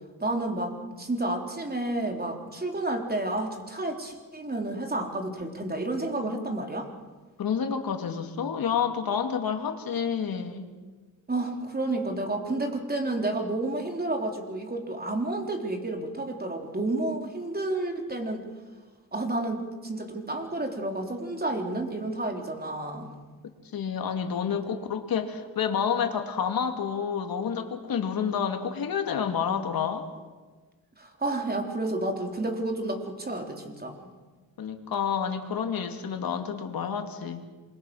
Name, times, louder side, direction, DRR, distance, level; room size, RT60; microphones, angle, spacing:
voice 1, 0.2-6.9 11.3-18.4 19.1-23.1 31.0-34.1, right 2 dB, 25° right, 3 dB, 3.8 m, -30 dB
voice 2, 7.4-10.7 23.7-30.1 34.6-37.4, left 7 dB, 85° left, 5 dB, 2.3 m, -29 dB
27.0 x 22.5 x 6.3 m, 1.3 s
cardioid pair, 90°, 35 cm